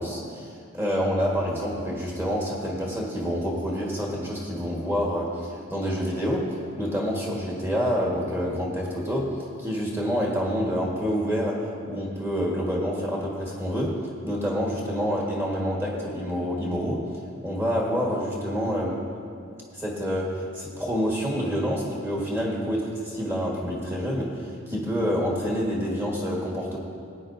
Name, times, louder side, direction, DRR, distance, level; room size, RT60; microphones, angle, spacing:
voice 1, 0.0-17.1 17.4-19.0 19.7-26.8, equal, 10° right, -3 dB, 1.5 m, -27 dB
18.0 x 9.5 x 2.6 m, 2.4 s
head